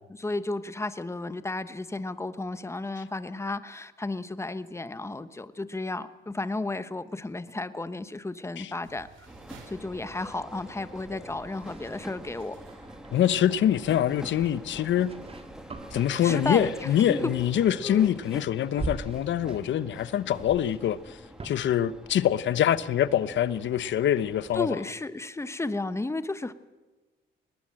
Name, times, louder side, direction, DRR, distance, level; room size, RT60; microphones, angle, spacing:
voice 1, 0.1-9.3 9.7-12.6 16.2-17.3 17.8-18.2 24.5-26.5, left 2 dB, 15° left, 1.2 m, -33 dB
sound 1, 8.8-15.7, right 5 dB, 80° right, 4.3 m, -55 dB
sound 2, 9.3-24.7, equal, 5° right, 1.9 m, -45 dB
sound 3, 11.6-13.4 14.3-17.0 17.3-17.7 17.9-21.6, right 3 dB, 30° right, 2.0 m, -43 dB
voice 2, 13.1-15.1 15.9-21.2 21.4-24.7, left 10 dB, 70° left, 0.9 m, -25 dB
21.0 x 19.0 x 7.6 m
cardioid pair, 90°, 20 cm